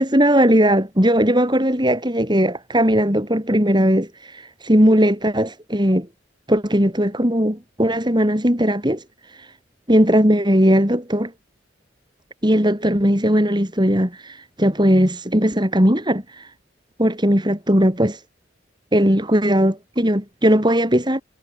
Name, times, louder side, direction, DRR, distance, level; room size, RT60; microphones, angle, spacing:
voice 1, 0.0-6.1 6.5-9.0 9.3-9.5 9.9-11.3 12.4-16.5 17.0-18.2 18.9-21.2, equal, 25° right, 6.2 m, -18 dB
head